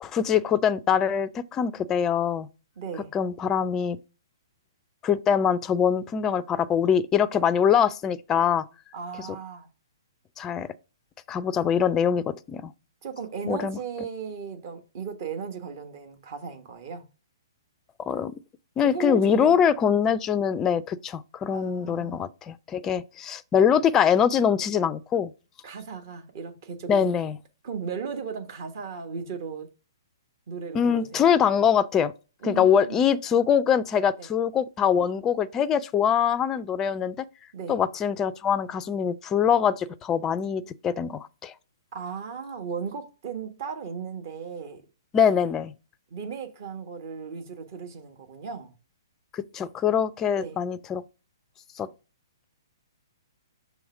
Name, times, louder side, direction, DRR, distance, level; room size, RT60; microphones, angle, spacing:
voice 1, 0.0-2.5 3.1-4.0 5.0-8.6 9.2-9.3 10.4-10.7 11.3-12.7 13.5-13.8 18.1-18.4 18.8-25.3 26.9-27.4 30.7-32.1 32.4-37.3 37.7-41.5 45.1-45.7 49.3-51.0 51.8-51.9, left 8 dB, 20° left, 0.4 m, -23 dB
voice 2, 2.8-3.1 8.9-9.7 13.0-17.0 18.8-19.5 21.5-22.2 25.6-27.1 27.6-29.7 30.5-31.3 32.4-33.0 34.2-34.3 37.5-37.8 41.9-44.8 46.1-48.7 50.4-50.6, right 6 dB, 45° right, 1.3 m, -36 dB
6.3 x 3.1 x 4.8 m
figure-of-eight pair, 120°, 2 cm